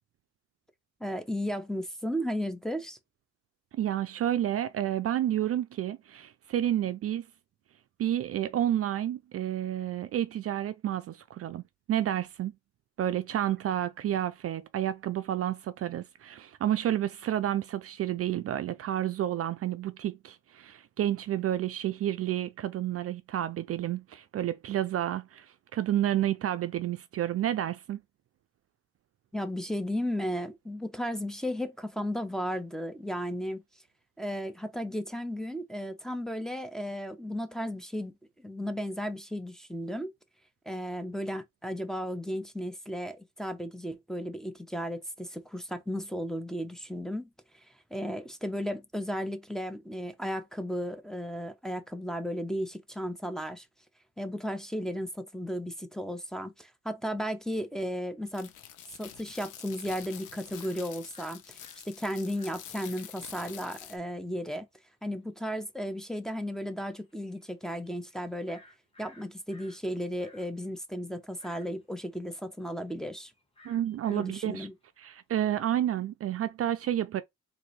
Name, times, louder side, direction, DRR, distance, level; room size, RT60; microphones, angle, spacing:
voice 1, 1.0-3.0 29.3-33.6 34.2-38.1 38.4-40.1 40.7-47.3 47.9-53.7 54.2-58.5 59.0-61.6 61.8-64.7 65.0-68.6 69.0-73.3 74.1-74.7, equal, ahead, 0.6 m, -34 dB
voice 2, 3.7-7.3 8.0-12.5 13.0-28.0 73.6-74.7 75.0-77.2, right 11 dB, 50° right, 0.4 m, -30 dB
sound 1, 58.2-64.0, left 10 dB, 85° left, 0.8 m, -47 dB
sound 2, 60.6-60.8 61.1-63.4 63.8-63.9 64.1-64.4 65.1-65.2 65.8-65.9 66.3-66.5 66.9-69.8 70.1-75.1, left 1 dB, 20° left, 1.4 m, -58 dB
3.8 x 2.6 x 3.1 m
cardioid pair, 90°, 30 cm